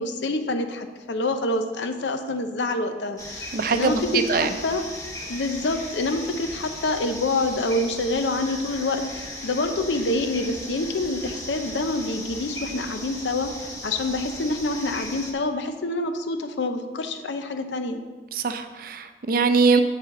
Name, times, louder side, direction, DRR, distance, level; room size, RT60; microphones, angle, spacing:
voice 1, 0.0-4.8 5.3-18.0, left 2 dB, 85° left, 8 dB, 0.7 m, -27 dB
sound 1, 3.2-15.3, left 1 dB, 20° left, 0.9 m, -37 dB
voice 2, 3.5-3.9 4.3-4.5 18.3-19.8, right 4 dB, 55° right, 9 dB, 0.5 m, -22 dB
7.5 x 7.5 x 3.8 m, 1.3 s
head